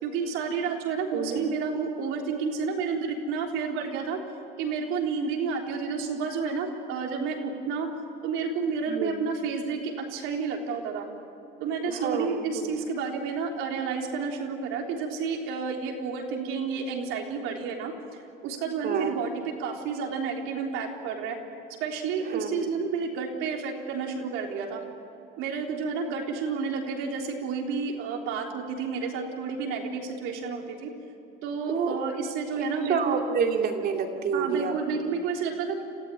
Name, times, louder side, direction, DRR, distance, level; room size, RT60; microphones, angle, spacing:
voice 1, 0.0-4.2 4.6-7.9 8.2-11.1 11.6-19.3 19.6-21.4 21.8-24.8 25.4-30.9 31.4-33.2 34.3-35.8, right 5 dB, 70° right, 1 dB, 3.7 m, -30 dB
voice 2, 1.1-1.5 8.9-9.2 12.0-12.3 18.8-19.1 22.3-22.7 31.7-32.0 32.6-34.7, right 6 dB, 50° right, 3 dB, 2.8 m, -28 dB
27.5 x 15.0 x 9.8 m, 2.7 s
supercardioid pair, 110°, 21 cm